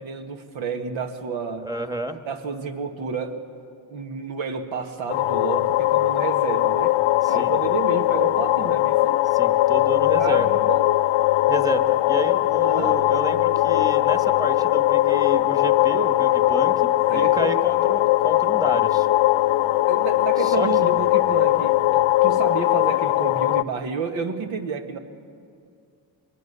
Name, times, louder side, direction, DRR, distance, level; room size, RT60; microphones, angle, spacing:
voice 1, 0.0-1.7 2.3-3.4 3.9-7.0 7.3-9.2 10.2-10.9 12.6-13.0 17.1-17.5 19.9-25.0, right 5 dB, 80° right, 6 dB, 1.8 m, -30 dB
voice 2, 1.6-2.2 7.2-7.5 9.2-10.6 11.5-19.1 20.4-21.0, right 2 dB, 10° right, 7 dB, 1.4 m, -31 dB
sound 1, 5.1-23.6, left 15 dB, 85° left, 0.6 m, -20 dB
23.0 x 20.0 x 6.9 m, 2.4 s
cardioid pair, 80°, 47 cm